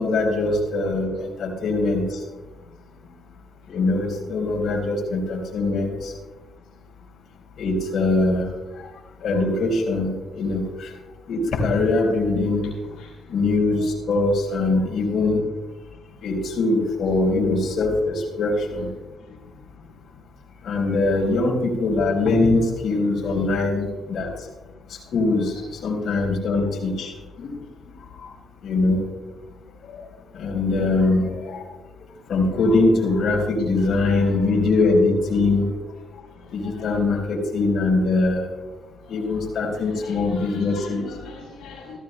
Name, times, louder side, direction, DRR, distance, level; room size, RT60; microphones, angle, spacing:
voice 1, 0.0-2.2 3.7-6.1 7.6-8.5 9.2-10.9 11.3-12.7 13.3-15.4 16.2-18.9 20.6-24.3 25.1-25.5 25.8-27.1 27.4-27.5 28.2-28.3 28.6-29.0 29.9-30.0 30.3-31.6 32.3-35.7 36.5-38.5 39.1-41.0, left 2 dB, 65° left, -1 dB, 4.2 m, -22 dB
voice 2, 12.6-13.1 18.8-19.0 19.3-19.4 21.1-21.2 25.5-25.7 33.8-34.3 36.6-36.9 39.0-39.5 39.7-42.0, left 4 dB, 85° left, -3 dB, 2.5 m, -43 dB
16.5 x 14.5 x 2.2 m, 1.2 s
cardioid pair, 90°, 0 cm